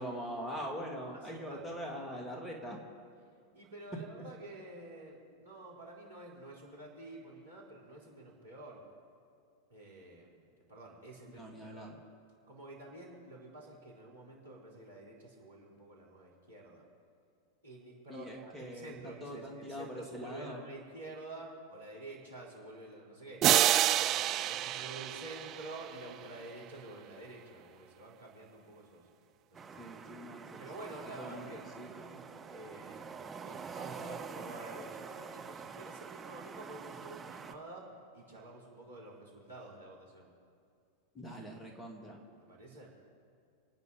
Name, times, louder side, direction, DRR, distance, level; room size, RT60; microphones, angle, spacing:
voice 1, 0.0-2.8 4.2-4.3 11.4-11.9 18.1-18.9 19.2-20.6 29.8-30.6 31.2-31.5 31.8-31.9 41.1-42.2, equal, 10° left, 1 dB, 2.5 m, -42 dB
voice 2, 1.2-1.6 3.5-8.8 9.7-11.9 12.5-16.8 17.6-23.6 23.9-29.1 29.5-30.0 30.6-37.9 38.1-40.3 42.5-42.9, right 2 dB, 75° right, -4 dB, 4.4 m, -49 dB
sound 1, 23.4-26.1, right 13 dB, 35° right, 0.5 m, -28 dB
sound 2, 29.5-37.6, right 5 dB, 20° right, 0.9 m, -46 dB
28.0 x 9.5 x 5.3 m, 2.3 s
figure-of-eight pair, 90°, 0 cm